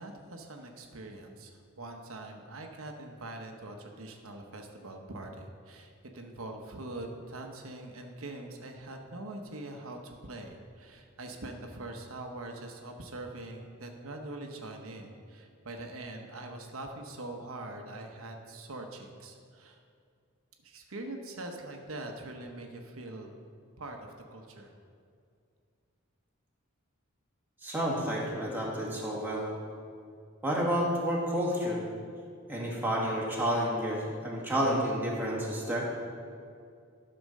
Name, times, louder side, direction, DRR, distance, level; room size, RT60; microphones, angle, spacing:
voice 1, 0.0-19.8 20.6-23.3 23.8-24.7, right 2 dB, 80° right, 3 dB, 1.0 m, -43 dB
voice 2, 27.6-29.5 30.4-31.8 32.5-35.9, equal, 10° right, -4 dB, 1.7 m, -30 dB
11.5 x 4.4 x 6.5 m, 2.4 s
head